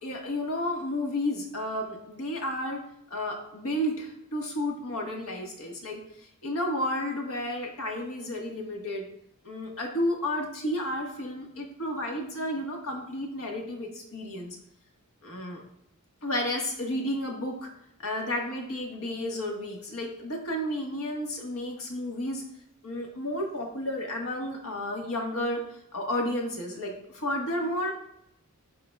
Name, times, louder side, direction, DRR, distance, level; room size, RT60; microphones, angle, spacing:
voice 1, 0.0-2.8 3.1-6.0 6.4-9.0 9.4-14.6 15.2-15.6 16.2-17.7 18.0-22.4 22.8-25.6 25.9-27.9, left 1 dB, 70° left, 1 dB, 1.5 m, -32 dB
11.0 x 3.9 x 2.3 m, 0.76 s
head